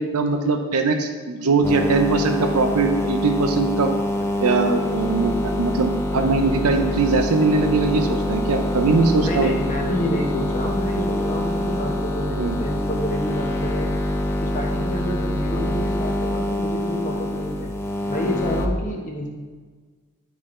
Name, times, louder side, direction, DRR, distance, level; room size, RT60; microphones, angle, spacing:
voice 1, 0.0-3.9 4.4-9.5 12.4-12.6, right 3 dB, 85° right, 6 dB, 0.7 m, -21 dB
sound 1, 1.6-18.7, left 1 dB, 10° left, 0.5 m, -25 dB
voice 2, 9.2-13.9 14.4-17.7 18.1-19.3, equal, 35° left, 0 dB, 1.0 m, -28 dB
11.0 x 4.0 x 3.2 m, 1.5 s
head